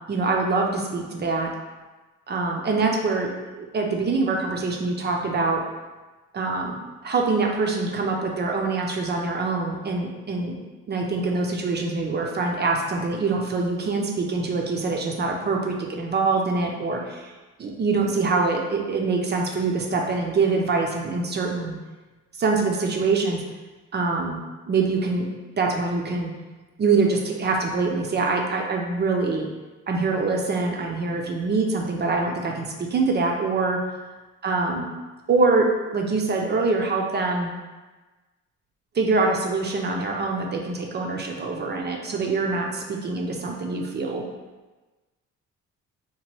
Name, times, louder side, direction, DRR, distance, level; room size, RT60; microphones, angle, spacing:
voice 1, 0.1-1.5 2.3-5.6 6.3-10.5 10.9-17.3 17.6-21.8 22.4-23.4 23.9-25.3 25.6-26.3 26.8-29.5 29.9-33.8 34.4-34.9 35.3-37.5 38.9-44.2, right 3 dB, 35° right, 1 dB, 0.4 m, -24 dB
2.9 x 2.1 x 3.0 m, 1.2 s
cardioid pair, 90°, 30 cm